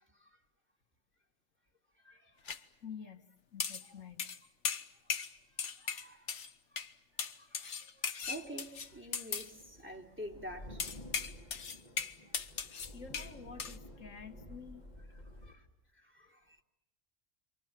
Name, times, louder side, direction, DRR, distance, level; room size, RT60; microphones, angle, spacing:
voice 1, 2.0-2.5 5.8-6.3 6.7-6.8 7.4-7.9 8.2-10.8 15.4-15.6 15.9-16.6, equal, 10° right, 3.1 m, -48 dB
sound 1, 2.5-2.6 3.6-3.9 4.2-4.4 4.6-5.3 5.6-6.5 6.8-6.9 7.2-9.5 10.8-13.3 13.6-13.8, left 6 dB, 65° left, 1.5 m, -38 dB
voice 2, 2.8-4.3 12.9-14.8, left 6 dB, 90° left, 2.1 m, -49 dB
sound 2, 8.2-15.5, left 1 dB, 35° left, 3.8 m, -52 dB
28.5 x 25.0 x 7.6 m
omnidirectional pair, 1.3 m